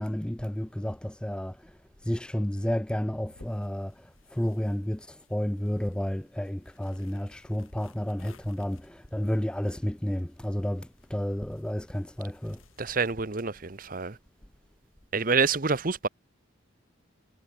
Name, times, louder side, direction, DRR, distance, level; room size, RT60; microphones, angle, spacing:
voice 1, 0.0-1.7 2.0-12.6, equal, 5° left, 0.3 m, -31 dB
sound 1, 3.3-13.1, left 2 dB, 90° left, 4.6 m, -59 dB
voice 2, 12.8-14.2 15.1-16.1, right 4 dB, 40° right, 0.9 m, -27 dB
head